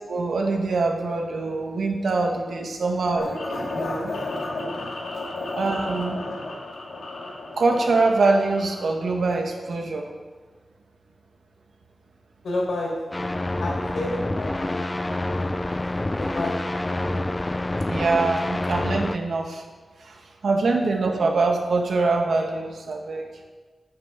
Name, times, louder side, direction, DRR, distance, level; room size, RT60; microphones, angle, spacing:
voice 1, 0.1-4.2 5.5-6.2 7.6-10.1 17.9-19.6 20.0-23.3, right 3 dB, 70° right, 2 dB, 1.8 m, -24 dB
sound 1, 3.2-9.1, left 2 dB, 70° left, 2.9 m, -33 dB
voice 2, 12.4-13.3 13.6-15.8 16.1-16.8, left 2 dB, 90° left, -2 dB, 4.5 m, -31 dB
sound 2, 13.1-19.2, left 1 dB, 15° left, 0.4 m, -27 dB
10.5 x 9.0 x 7.4 m, 1.4 s
wide cardioid pair, 180°, 0 cm